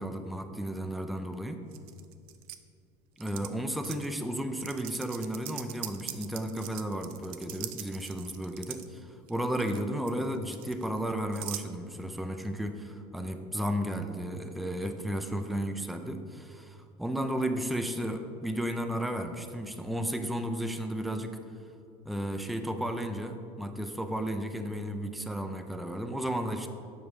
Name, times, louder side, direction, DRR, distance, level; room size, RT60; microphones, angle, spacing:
voice 1, 0.0-1.6 3.2-21.4 22.1-26.7, equal, ahead, 6 dB, 0.4 m, -33 dB
sound 1, 1.7-2.6 3.2-3.5 3.8-4.1 4.6-8.9 9.3-9.8 10.1-11.6, right 14 dB, 70° right, 0.5 m, -41 dB
7.5 x 5.0 x 4.7 m, 2.5 s
supercardioid pair, 120°, 15 cm